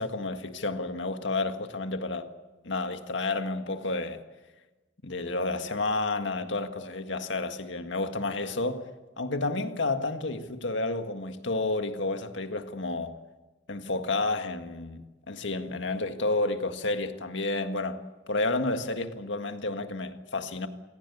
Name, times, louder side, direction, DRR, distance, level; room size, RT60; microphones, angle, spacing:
voice 1, 0.0-2.3 2.6-4.2 5.0-8.8 9.2-13.2 13.7-15.0 15.3-18.0 18.3-20.7, left 2 dB, 80° left, 1.8 m, -30 dB
27.0 x 17.5 x 8.5 m
head